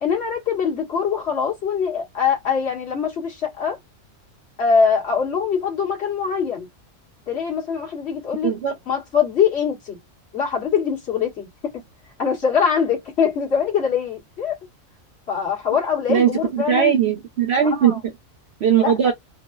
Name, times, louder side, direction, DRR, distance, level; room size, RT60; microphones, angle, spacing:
voice 1, 0.0-3.8 4.6-6.7 7.3-8.6 8.9-10.0 10.3-11.5 11.7-11.8 12.2-14.6 15.3-17.0 17.7-18.0 18.8-19.0, left 6 dB, 50° left, 1.8 m, -23 dB
voice 2, 8.4-8.7 16.1-17.9 18.6-19.1, right 8 dB, 60° right, 0.8 m, -19 dB
4.5 x 2.1 x 2.3 m
omnidirectional pair, 1.4 m